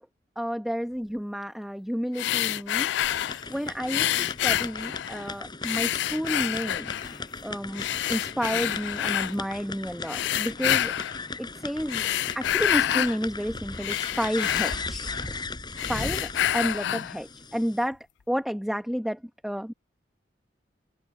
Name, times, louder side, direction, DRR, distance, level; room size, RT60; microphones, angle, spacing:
voice 1, 0.4-2.9 3.5-6.9 7.4-10.9 11.4-12.1 12.3-15.3 15.8-18.0 18.3-19.7, equal, ahead, 1.1 m, -31 dB
sound 1, 2.1-3.5 3.9-5.3 5.6-7.2 7.7-9.3 10.0-11.2 11.8-13.2 13.6-15.4 15.7-17.2, left 11 dB, 75° left, 0.3 m, -28 dB
sound 2, 3.0-17.9, left 3 dB, 25° left, 5.4 m, -38 dB
open air
head